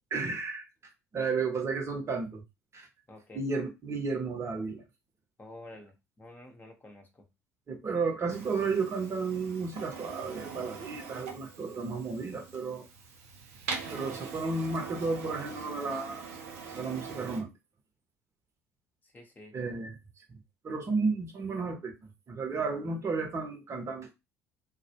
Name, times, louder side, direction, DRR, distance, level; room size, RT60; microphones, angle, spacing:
voice 1, 0.1-0.7 1.1-2.4 2.7-2.9 3.3-4.8 7.7-12.8 13.9-16.2 16.7-17.5 19.5-19.9 20.3-20.4 20.6-21.9 22.3-24.1, right 4 dB, 35° right, 0.8 m, -32 dB
voice 2, 3.1-3.4 5.4-7.3 19.0-19.6, left 1 dB, 25° left, 0.7 m, -50 dB
Printer, 8.3-17.4, right 5 dB, 80° right, 0.6 m, -42 dB
2.3 x 2.0 x 2.8 m
hypercardioid pair, 65°, 8 cm